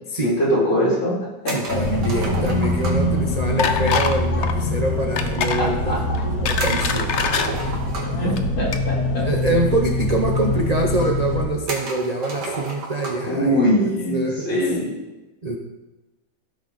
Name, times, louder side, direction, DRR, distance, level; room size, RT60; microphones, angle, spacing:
voice 1, 0.2-1.1 1.4-1.8 5.6-6.0 8.2-9.2 13.2-14.9, equal, 75° left, -7 dB, 4.5 m, -22 dB
sound 1, 1.4-3.2 6.6-8.3 9.4-9.5 9.7-9.8 10.6-10.7 11.7-13.3, right 3 dB, 60° right, 2.2 m, -32 dB
voice 2, 1.5-6.0 6.4-7.8 8.1-8.3 9.2-14.7 15.4-15.6, right 2 dB, 80° right, 1 dB, 0.3 m, -25 dB
sound 2, 1.7-11.5, left 2 dB, 45° left, 1.6 m, -24 dB
sound 3, 3.6-4.2 4.4-4.6 5.2-5.6 6.1-7.5 8.2-8.4 8.7-8.8, left 6 dB, 90° left, 0.6 m, -23 dB
15.0 x 6.4 x 4.1 m, 1.1 s
omnidirectional pair, 2.2 m